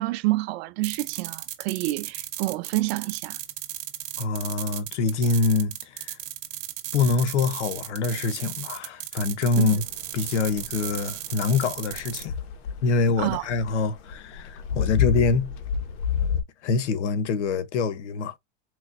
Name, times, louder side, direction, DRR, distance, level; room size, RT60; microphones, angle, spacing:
voice 1, 0.0-3.4 9.6-9.8 13.2-13.5, right 19 dB, 60° right, 0.7 m, -28 dB
sound 1, 0.8-12.3, right 13 dB, 45° right, 1.8 m, -35 dB
voice 2, 4.2-6.2 6.9-9.8 10.1-12.3 12.8-15.5 16.6-18.3, left 4 dB, 85° left, 0.9 m, -25 dB
sound 2, 9.6-16.4, left 8 dB, 60° left, 1.0 m, -29 dB
5.0 x 3.1 x 2.5 m
supercardioid pair, 115°, 34 cm